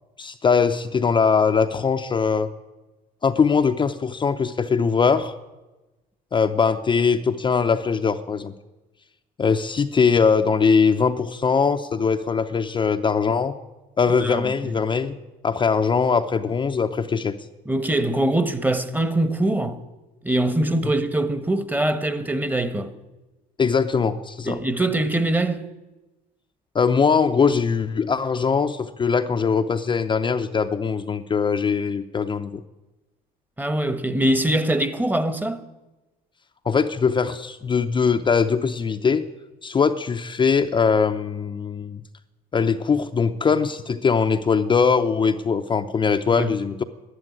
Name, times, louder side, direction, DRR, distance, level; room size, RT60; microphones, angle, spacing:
voice 1, 0.2-2.5 3.2-5.4 6.3-8.5 9.4-13.5 14.0-15.2 15.4-17.3 20.8-20.9 23.6-24.6 26.7-32.6 36.6-39.2 39.6-42.0 42.5-46.8, left 5 dB, 30° left, 0.6 m, -21 dB
voice 2, 14.2-14.7 17.6-19.8 20.2-22.9 24.4-25.7 33.6-35.6 46.4-46.5, right 1 dB, 10° right, 1.1 m, -23 dB
11.5 x 11.0 x 9.6 m
cardioid pair, 110°, 17 cm